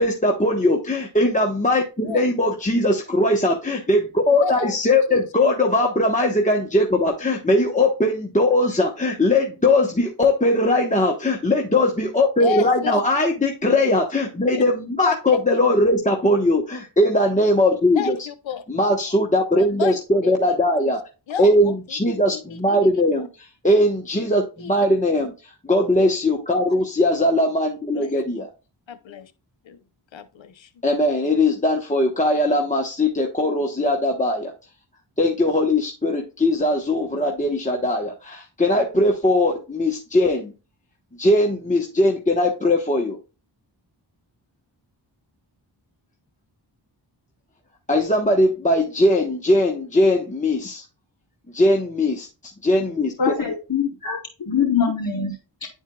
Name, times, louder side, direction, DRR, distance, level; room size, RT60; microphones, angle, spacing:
voice 1, 0.0-18.2 18.7-21.0 21.4-28.5 30.8-34.5 35.2-40.5 41.2-43.2 47.9-50.8 51.5-53.3, left 1 dB, 15° left, 1.1 m, -20 dB
voice 2, 4.3-4.8 5.1-5.2 12.4-13.0 14.5-14.6 15.0-15.4 17.9-18.6 19.5-20.0 20.2-20.9 21.3-23.3 24.6-24.7 26.8-26.9 27.9-28.1 28.9-29.3 29.6-29.8 30.1-30.7, left 7 dB, 85° left, 0.9 m, -32 dB
voice 3, 53.2-55.7, left 6 dB, 50° left, 2.8 m, -24 dB
10.5 x 4.5 x 2.3 m
wide cardioid pair, 65°, 45 cm